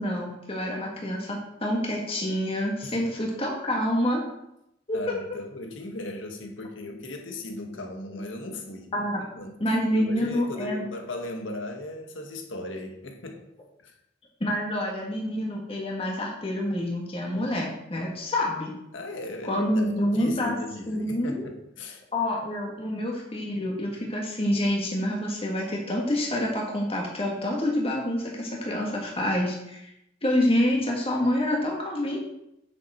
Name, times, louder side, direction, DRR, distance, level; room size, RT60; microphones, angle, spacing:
voice 1, 0.0-4.2 4.9-5.0 8.9-9.2 9.6-10.8 14.4-18.7 19.4-20.6 20.9-21.5 22.1-29.8 30.2-32.2, left 1 dB, 30° left, -2 dB, 1.9 m, -27 dB
voice 2, 4.9-9.1 9.3-9.6 9.9-13.4 13.8-13.9 18.9-22.0, left 2 dB, 85° left, 4 dB, 1.4 m, -37 dB
9.2 x 6.8 x 4.3 m, 0.82 s
head